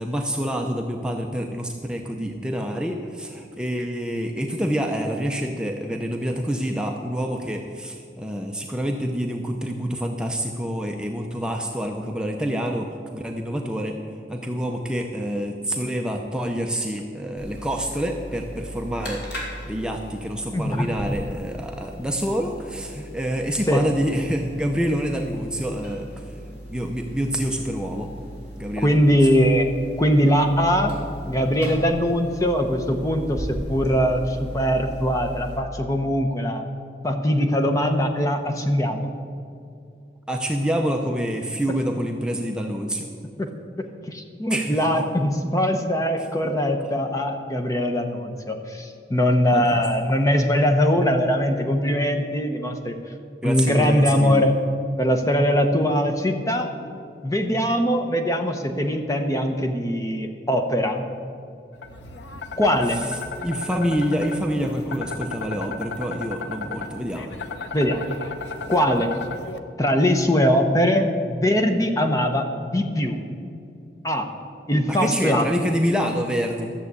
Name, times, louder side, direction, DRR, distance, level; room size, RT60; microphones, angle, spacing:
voice 1, 0.0-13.9 14.3-19.2 19.7-26.3 26.7-28.1 28.6-29.2 40.3-43.1 44.5-45.0 46.2-46.3 49.5-49.8 53.4-54.5 62.9-67.4 74.9-76.7, equal, 5° right, 2 dB, 0.7 m, -27 dB
sound 1, 17.4-35.6, equal, 65° left, 3.6 m, -37 dB
voice 2, 20.5-20.9 23.0-23.1 23.7-23.8 28.8-29.7 30.0-31.0 31.3-36.6 37.0-39.1 43.4-43.5 43.8-53.0 53.4-54.6 55.0-56.7 57.2-61.1 62.6-63.0 67.7-68.1 68.7-69.1 69.8-73.2 74.0-74.3 74.7-75.5, equal, 20° left, 5 dB, 0.9 m, -21 dB
sound 2, 61.8-69.6, left 3 dB, 80° left, 0.8 m, -35 dB
13.5 x 7.4 x 8.2 m, 2.5 s
head